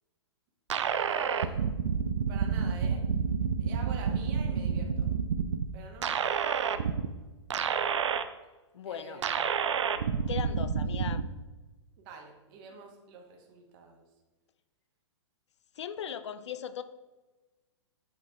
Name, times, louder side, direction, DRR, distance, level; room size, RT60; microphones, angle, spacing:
voice 1, 0.7-1.6 2.3-3.0 3.6-5.1 5.7-6.5 8.8-9.7 12.0-14.0, right 4 dB, 45° right, 2 dB, 1.3 m, -47 dB
sound 1, 0.7-5.7 6.0-7.1 7.5-8.2 9.2-11.3, right 6 dB, 75° right, 0.5 m, -29 dB
voice 2, 8.7-9.2 10.3-11.2 15.8-16.8, left 8 dB, 70° left, 12 dB, 0.5 m, -38 dB
8.4 x 4.0 x 3.5 m, 1.2 s
hypercardioid pair, 115°, 15 cm